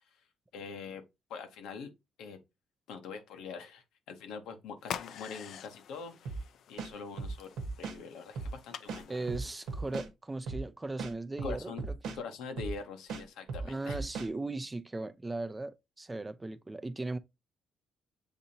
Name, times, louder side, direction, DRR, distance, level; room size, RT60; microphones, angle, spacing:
voice 1, 0.5-1.0 1.3-1.9 2.2-2.4 2.9-7.5 7.8-9.3 11.4-11.8 12.1-14.0, left 5 dB, 90° left, 0.9 m, -44 dB
sound 1, 4.8-10.0, left 9 dB, 70° left, 0.4 m, -46 dB
sound 2, 6.3-6.4 6.8-8.0 8.4-8.5 8.9-10.1 10.5-10.6 11.0-12.2 12.6-12.8 13.1-14.3, right 4 dB, 80° right, 1.1 m, -37 dB
voice 2, 9.1-11.7 12.1-12.2 13.6-17.2, right 2 dB, 20° right, 0.4 m, -37 dB
7.0 x 2.7 x 2.7 m
cardioid pair, 90°, 0 cm